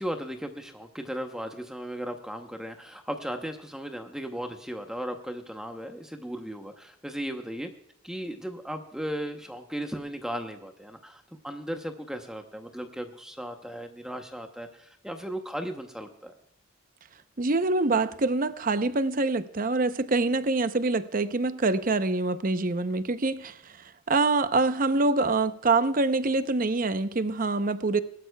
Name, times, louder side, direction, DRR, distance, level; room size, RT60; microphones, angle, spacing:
voice 1, 0.0-7.7 8.0-16.3, equal, 5° right, 0.8 m, -36 dB
voice 2, 17.4-23.7 24.1-28.0, right 3 dB, 40° right, 0.7 m, -25 dB
20.5 x 12.5 x 2.3 m
head